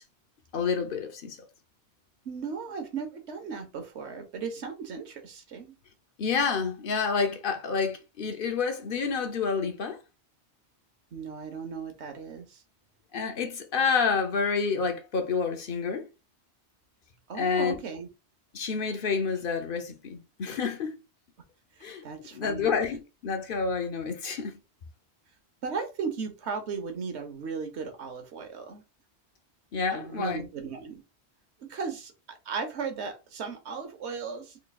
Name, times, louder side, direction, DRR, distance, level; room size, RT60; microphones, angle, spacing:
voice 1, 0.5-1.4 6.2-10.0 13.1-16.1 17.4-17.8 18.5-21.0 21.8-22.0 22.3-24.5 29.7-30.5, left 5 dB, 55° left, 0.8 m, -29 dB
voice 2, 2.2-5.8 11.1-12.6 17.3-18.1 21.8-22.7 25.6-28.8 29.9-31.0 31.6-34.6, right 5 dB, 80° right, 1.2 m, -36 dB
3.8 x 3.1 x 2.3 m
omnidirectional pair, 1.1 m